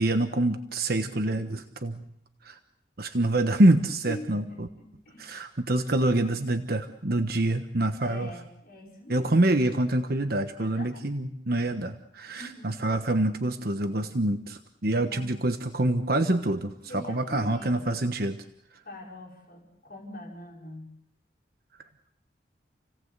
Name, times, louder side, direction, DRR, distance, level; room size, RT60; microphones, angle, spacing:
voice 1, 0.0-2.0 2.4-2.6 3.0-4.7 5.2-8.3 9.1-18.4, right 1 dB, 55° right, 7 dB, 1.2 m, -26 dB
voice 2, 4.1-5.3 8.0-9.6 10.6-11.1 12.3-12.8 15.1-15.3 16.9-17.9 18.9-20.9, left 1 dB, 55° left, -2 dB, 5.3 m, -43 dB
29.0 x 17.5 x 8.1 m, 0.75 s
head